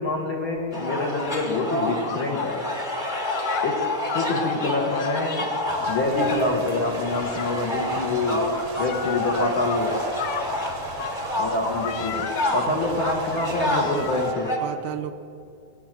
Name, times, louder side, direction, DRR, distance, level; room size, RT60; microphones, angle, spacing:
voice 1, 0.0-2.7 3.6-5.5 5.9-10.0 11.4-14.6, left 2 dB, 50° left, 0 dB, 1.6 m, -26 dB
sound 1, 0.7-14.6, left 1 dB, 20° left, 1.3 m, -29 dB
sound 2, 0.8-1.4 2.0-2.5 3.2-4.6 4.9-6.5 7.1-7.5 8.7-9.8 10.2-10.5 11.0-12.7 13.3-14.3, left 10 dB, 75° left, 1.8 m, -33 dB
sound 3, 5.7-14.3, right 6 dB, 65° right, 1.8 m, -42 dB
voice 2, 12.7-13.0 13.7-14.1 14.6-15.1, right 11 dB, 80° right, 8 dB, 1.9 m, -33 dB
20.0 x 9.1 x 7.4 m, 2.5 s
omnidirectional pair, 3.7 m